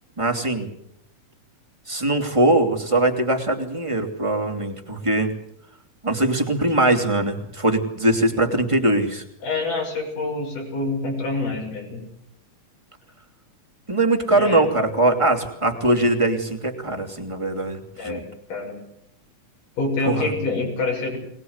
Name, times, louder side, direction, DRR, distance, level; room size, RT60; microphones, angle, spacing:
voice 1, 0.2-0.7 1.9-5.3 6.0-9.2 13.9-18.2 20.0-20.3, right 2 dB, 10° right, 1 dB, 2.5 m, -21 dB
voice 2, 9.4-12.0 14.3-14.6 18.0-18.8 19.8-21.2, left 3 dB, 80° left, 0 dB, 8.1 m, -26 dB
23.5 x 20.0 x 8.1 m, 0.74 s
omnidirectional pair, 3.7 m